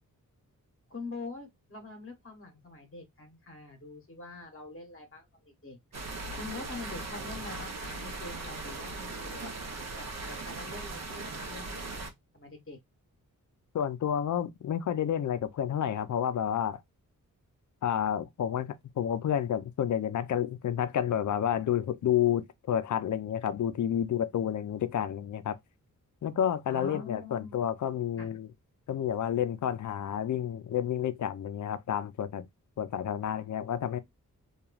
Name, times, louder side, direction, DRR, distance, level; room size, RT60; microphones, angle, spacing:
voice 1, 0.9-5.3 5.6-5.8 6.1-9.5 10.0-12.8 26.7-27.6 28.2-28.3, left 3 dB, 40° left, 1.0 m, -44 dB
sound 1, 5.9-12.1, right 3 dB, 50° right, 0.7 m, -39 dB
voice 2, 13.7-16.8 17.8-25.6 26.2-28.5 28.9-32.5 32.8-34.0, left 9 dB, 60° left, 0.5 m, -30 dB
3.0 x 2.3 x 2.3 m
wide cardioid pair, 90°, 33 cm